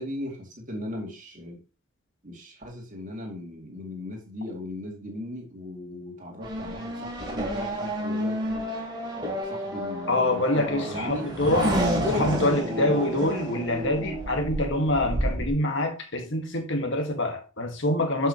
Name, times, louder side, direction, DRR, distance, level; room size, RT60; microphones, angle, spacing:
voice 1, 0.0-1.6 2.2-8.7 9.2-11.3, left 1 dB, 35° right, 2.3 m, -38 dB
Race car auto racing / Accelerating revving vroom, 6.4-15.5, equal, 20° right, 2.7 m, -30 dB
voice 2, 10.1-18.3, left 1 dB, 55° left, 1.6 m, -26 dB
11.0 x 5.7 x 2.9 m
head